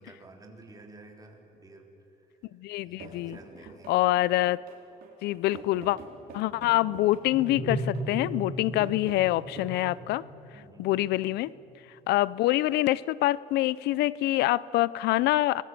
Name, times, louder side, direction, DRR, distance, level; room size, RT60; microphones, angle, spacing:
voice 1, 0.0-1.9 2.8-4.1 10.5-10.9, right 2 dB, 20° right, 1 dB, 3.9 m, -51 dB
voice 2, 2.6-3.4 3.9-4.6 5.2-6.0 6.3-10.2 10.8-11.5 12.1-15.6, left 16 dB, 80° left, 20 dB, 0.5 m, -25 dB
sound 1, 3.0-9.6, right 5 dB, 60° right, 4.3 m, -47 dB
sound 2, 6.4-11.8, equal, 45° left, 5.9 m, -37 dB
25.5 x 21.0 x 7.5 m, 3.0 s
cardioid pair, 110°, 17 cm